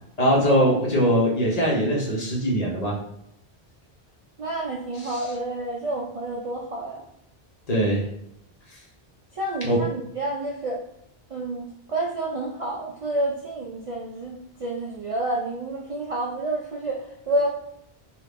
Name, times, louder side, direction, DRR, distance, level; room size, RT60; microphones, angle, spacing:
voice 1, 0.2-3.0 5.0-5.2 7.7-8.0 9.6-9.8, equal, 40° left, -4 dB, 0.9 m, -21 dB
voice 2, 4.4-7.0 9.3-10.8 11.3-17.5, right 2 dB, 50° right, -3 dB, 0.4 m, -29 dB
2.8 x 2.4 x 3.5 m, 0.74 s
omnidirectional pair, 1.0 m